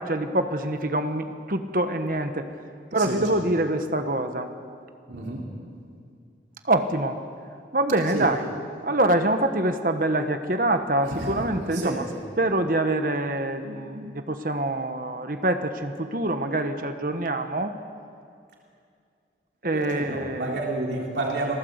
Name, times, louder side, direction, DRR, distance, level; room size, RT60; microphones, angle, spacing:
voice 1, 0.0-2.5 2.9-4.5 6.6-7.2 7.7-8.5 8.8-12.1 12.4-17.7 19.6-20.5, right 1 dB, 50° right, 7 dB, 1.3 m, -25 dB
voice 2, 5.1-5.5 8.1-8.3 11.0-11.5 11.7-12.1 19.7-21.6, right 2 dB, 75° right, -2 dB, 3.3 m, -30 dB
27.0 x 18.0 x 8.1 m, 2.3 s
head